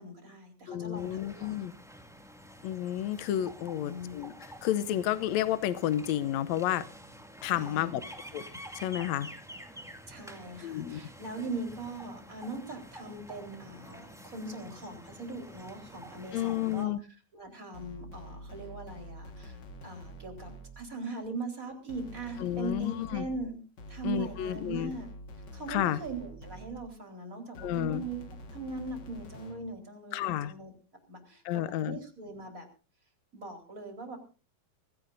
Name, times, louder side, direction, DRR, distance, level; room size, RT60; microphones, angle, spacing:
voice 1, 0.0-1.5 3.6-4.1 7.4-8.0 10.1-16.9 17.3-23.6 23.9-25.1 25.5-28.2 28.5-30.7 31.1-32.7 33.3-34.2, right 3 dB, 20° right, 3 dB, 4.3 m, -40 dB
voice 2, 0.7-1.7 2.6-4.3 4.6-6.8 7.4-8.0 8.3-8.4 8.7-9.3 10.6-11.0 16.3-17.0 22.4-23.3 24.0-24.9 25.7-26.0 27.6-28.0 30.1-30.5 31.4-32.0, left 12 dB, 90° left, 14 dB, 1.5 m, -31 dB
sound 1, 0.9-16.8, equal, ahead, 0.6 m, -49 dB
sound 2, 17.7-21.0 21.9-27.0 27.5-29.8, equal, 55° left, 1.2 m, -47 dB
24.0 x 16.0 x 2.6 m, 0.34 s
omnidirectional pair, 4.4 m